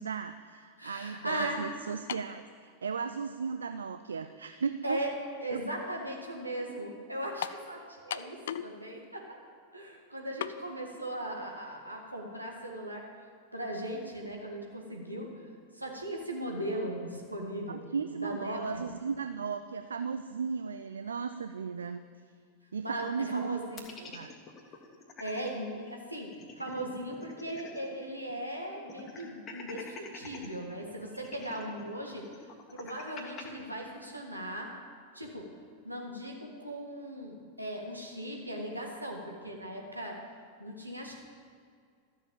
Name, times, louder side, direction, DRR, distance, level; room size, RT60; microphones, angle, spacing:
voice 1, 0.0-5.0 17.7-22.0 22.7-23.6 24.0-24.3, right 6 dB, 70° right, 10 dB, 0.4 m, -36 dB
voice 2, 0.8-1.6 4.8-5.1 5.4-9.3 9.7-13.0 13.5-15.3 15.7-18.8 22.8-23.8 25.2-32.3 32.7-34.7 35.1-35.5 35.9-40.2 40.6-41.1, right 1 dB, 85° right, 0 dB, 1.9 m, -38 dB
sound 1, 2.1-2.4 3.3-3.4 7.4-7.7 8.1-8.8 9.0-9.1 10.4-10.6, left 10 dB, 60° left, 0.4 m, -36 dB
sound 2, 23.8-25.5 25.9-26.0 26.2-28.0 28.3-28.4 28.9-30.5 31.1-33.4, left 4 dB, 30° left, 1.7 m, -47 dB
13.0 x 7.1 x 7.3 m, 2.2 s
figure-of-eight pair, 90°, 0 cm